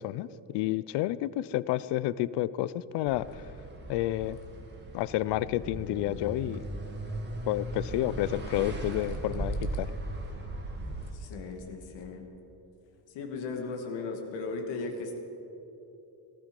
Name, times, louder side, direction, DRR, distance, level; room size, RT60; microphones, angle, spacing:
voice 1, 0.0-3.4 3.9-4.4 4.9-6.6 7.5-9.9, left 14 dB, 70° left, 17 dB, 0.5 m, -30 dB
sound 1, 3.1-11.1, right 1 dB, 25° right, 1.9 m, -37 dB
voice 2, 11.1-12.3 13.1-15.2, left 3 dB, 85° left, 3 dB, 2.2 m, -37 dB
18.5 x 12.5 x 5.3 m, 3.0 s
cardioid pair, 155°, 43 cm